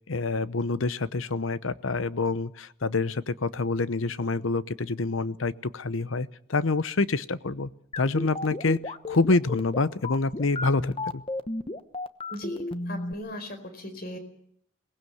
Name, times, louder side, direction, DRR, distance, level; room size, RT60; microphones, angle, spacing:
voice 1, 0.1-7.7 8.0-11.2, left 3 dB, 80° left, 15 dB, 0.8 m, -27 dB
sound 1, 7.9-13.1, left 2 dB, 25° left, 0.9 m, -32 dB
voice 2, 12.3-14.2, left 1 dB, 50° left, 8 dB, 4.5 m, -38 dB
22.5 x 19.0 x 8.0 m, 0.68 s
head